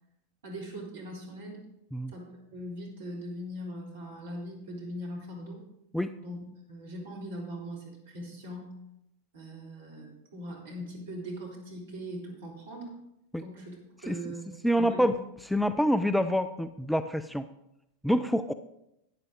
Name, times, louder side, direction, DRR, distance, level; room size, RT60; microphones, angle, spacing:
voice 1, 0.4-1.6 2.1-5.6 6.2-6.4 6.7-8.8 9.3-12.9 13.4-14.5 14.8-15.1, equal, 60° right, -2 dB, 3.7 m, -40 dB
voice 2, 14.6-15.2 15.5-17.4 18.0-18.5, equal, ahead, 11 dB, 0.4 m, -26 dB
12.0 x 9.2 x 3.9 m, 0.82 s
figure-of-eight pair, 90°, 0 cm